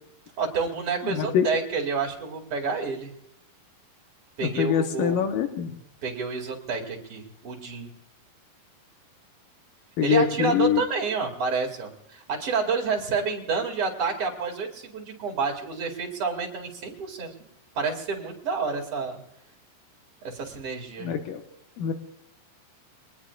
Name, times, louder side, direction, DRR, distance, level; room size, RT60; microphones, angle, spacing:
voice 1, 0.4-3.1 4.4-5.2 6.0-7.9 10.0-17.3 17.7-19.2 20.2-21.1, right 5 dB, 45° right, 1 dB, 3.2 m, -29 dB
voice 2, 1.0-1.5 4.4-5.7 10.0-10.8 21.0-21.4 21.8-21.9, left 8 dB, 80° left, 4 dB, 2.8 m, -24 dB
24.0 x 19.5 x 2.5 m, 0.77 s
omnidirectional pair, 3.9 m